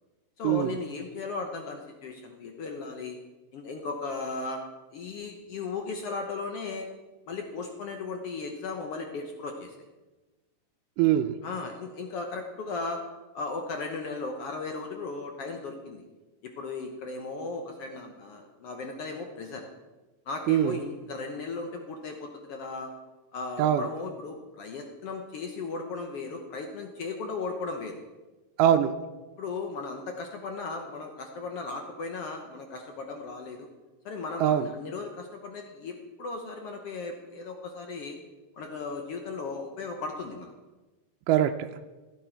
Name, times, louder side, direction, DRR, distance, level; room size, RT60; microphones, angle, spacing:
voice 1, 0.4-3.2 3.5-4.6 4.9-6.9 7.3-9.7 11.4-13.0 13.3-16.0 16.4-19.6 20.3-22.9 23.3-28.0 29.4-33.7 34.0-38.2 38.5-40.5, left 3 dB, 75° left, 3 dB, 1.4 m, -36 dB
voice 2, 11.0-11.3 20.5-20.8 23.6-23.9 28.6-28.9 34.4-34.7 41.3-41.7, right 11 dB, 80° right, 6 dB, 2.1 m, -22 dB
15.5 x 9.3 x 4.5 m, 1.2 s
omnidirectional pair, 3.9 m